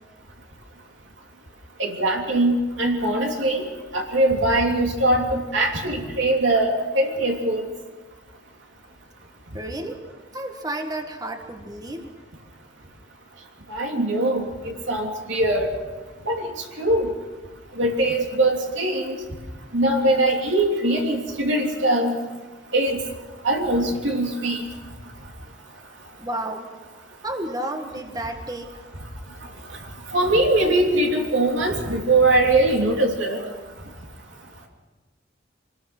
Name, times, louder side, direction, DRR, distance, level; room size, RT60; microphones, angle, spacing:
voice 1, 1.8-3.6 3.9-7.7 13.7-15.7 16.3-16.5 16.8-17.1 17.8-19.2 19.7-22.1 22.7-23.0 23.4-24.6 30.1-33.4, right 1 dB, 70° right, 0 dB, 3.1 m, -21 dB
voice 2, 9.5-10.0 10.3-12.1 26.2-26.7 27.2-28.7, right 1 dB, 20° right, 5 dB, 1.6 m, -31 dB
25.5 x 20.5 x 6.2 m, 1.2 s
head